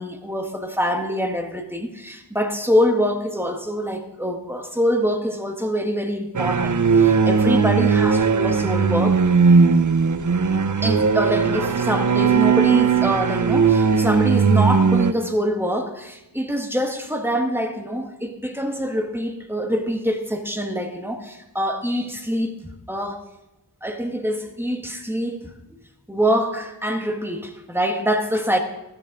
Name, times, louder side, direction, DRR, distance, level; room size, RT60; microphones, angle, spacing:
voice 1, 0.0-9.2 10.8-23.3 23.8-25.4 26.1-28.6, equal, 5° right, 4 dB, 1.7 m, -24 dB
sound 1, 6.3-15.1, right 5 dB, 45° right, 0.6 m, -18 dB
14.0 x 13.5 x 3.9 m, 0.96 s
wide cardioid pair, 40°, 42 cm